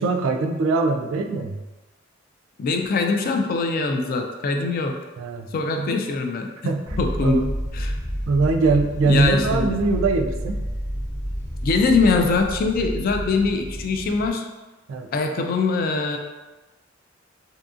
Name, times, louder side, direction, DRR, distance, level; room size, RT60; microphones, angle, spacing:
voice 1, 0.0-1.6 5.2-5.5 5.8-5.9 6.6-7.5 8.3-10.6 14.9-15.1, right 3 dB, 75° right, 5 dB, 0.3 m, -22 dB
voice 2, 2.6-4.9 5.5-6.5 7.0-7.4 7.7-7.9 9.1-9.7 11.6-14.4 15.1-16.2, left 3 dB, 50° left, 4 dB, 0.3 m, -22 dB
sound 1, 6.8-14.3, equal, 80° left, 0.9 m, -30 dB
2.6 x 2.5 x 2.4 m, 1.2 s
head